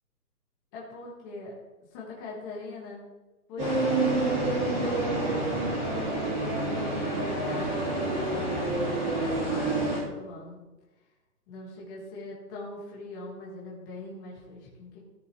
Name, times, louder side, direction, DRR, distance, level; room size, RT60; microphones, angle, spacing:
voice 1, 0.7-1.6 1.9-3.0 3.5-10.6 11.5-15.0, left 2 dB, 15° left, -4 dB, 1.5 m, -42 dB
sound 1, 3.6-10.0, right 2 dB, 20° right, 3.1 m, -28 dB
16.5 x 6.6 x 3.1 m, 1.1 s
hypercardioid pair, 170°, 48 cm